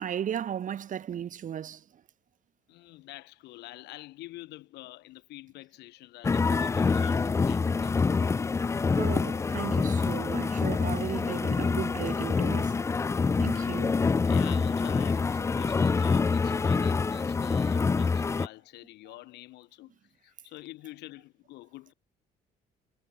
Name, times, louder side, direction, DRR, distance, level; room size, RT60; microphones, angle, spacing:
voice 1, 0.0-1.8 9.0-12.8 13.4-14.0, right 9 dB, 50° right, 3.4 m, -35 dB
voice 2, 2.7-8.0 14.3-21.9, left 18 dB, 85° left, 7.2 m, -47 dB
sound 1, 6.2-18.5, left 4 dB, 15° left, 0.4 m, -26 dB
cardioid pair, 110°, 17 cm